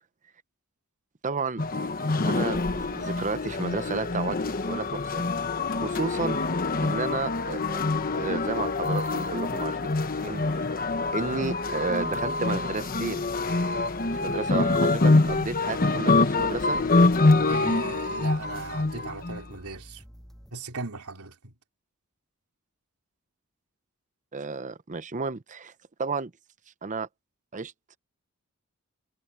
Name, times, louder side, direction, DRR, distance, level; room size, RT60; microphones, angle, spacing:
voice 1, 1.2-1.6 2.2-4.4 4.6-5.2 5.7-6.4 6.8-7.8 8.1-9.8 10.2-10.7 11.1-13.3 14.2-16.8 24.3-25.7 26.0-26.3 26.8-27.1 27.5-27.7, right 4 dB, 35° right, 0.7 m, -32 dB
sound 1, 1.6-19.4, left 3 dB, 40° left, 1.1 m, -25 dB
sound 2, 2.7-20.5, equal, ahead, 7.6 m, -49 dB
voice 2, 14.6-14.9 17.5-20.0 20.5-21.5, right 3 dB, 90° right, 3.5 m, -37 dB
head